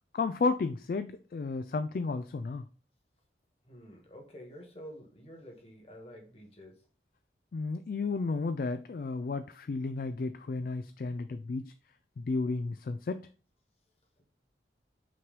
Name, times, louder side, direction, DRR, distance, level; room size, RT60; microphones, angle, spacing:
voice 1, 0.1-2.6 7.5-11.7 12.2-13.3, left 3 dB, 50° left, 0.3 m, -33 dB
voice 2, 3.6-6.9, equal, 35° left, 1.6 m, -49 dB
5.8 x 3.2 x 5.1 m
head